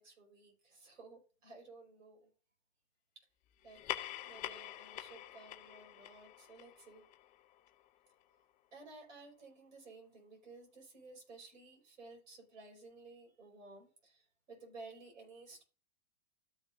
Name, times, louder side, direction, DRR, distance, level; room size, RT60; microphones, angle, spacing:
voice 1, 0.0-2.3 3.6-7.0 8.7-15.6, right 3 dB, 85° right, 4.9 m, -55 dB
sound 1, 3.6-8.5, left 14 dB, 20° left, 0.4 m, -46 dB
13.5 x 5.7 x 2.6 m
hypercardioid pair, 125°, 37 cm